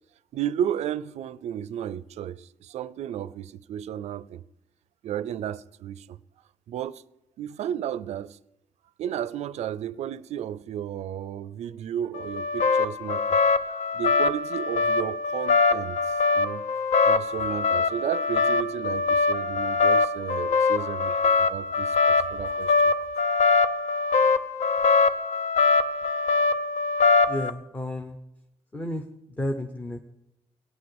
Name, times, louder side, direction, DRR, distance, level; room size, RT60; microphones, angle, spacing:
voice 1, 0.3-4.4 5.0-6.2 6.7-7.0 7.4-8.4 9.0-13.4 13.7-16.0 16.3-16.7 17.0-23.1, right 10 dB, 70° right, 0.4 m, -33 dB
sound 1, 12.1-27.5, left 4 dB, 70° left, 0.8 m, -23 dB
voice 2, 27.3-28.2 28.7-29.0 29.4-30.0, left 1 dB, 15° left, 0.7 m, -31 dB
18.0 x 9.4 x 7.9 m
cardioid pair, 175°, 12 cm